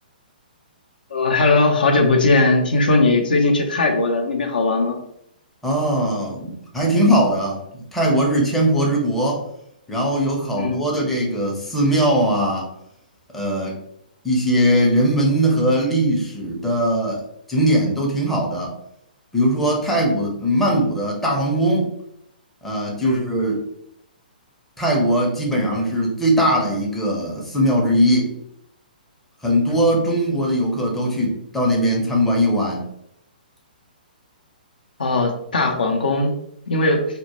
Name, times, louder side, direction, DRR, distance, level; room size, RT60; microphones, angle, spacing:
voice 1, 1.1-5.0 10.6-10.8 23.0-23.3 35.0-36.3 36.7-37.0, left 2 dB, 70° left, 3 dB, 0.4 m, -18 dB
voice 2, 5.6-9.5 9.9-12.7 13.3-13.8 14.2-17.2 17.5-18.7 19.3-21.9 22.6-23.6 24.8-28.3 29.4-32.8, equal, 5° left, -2 dB, 0.5 m, -20 dB
2.1 x 2.0 x 2.8 m, 0.76 s
figure-of-eight pair, 125°, 5 cm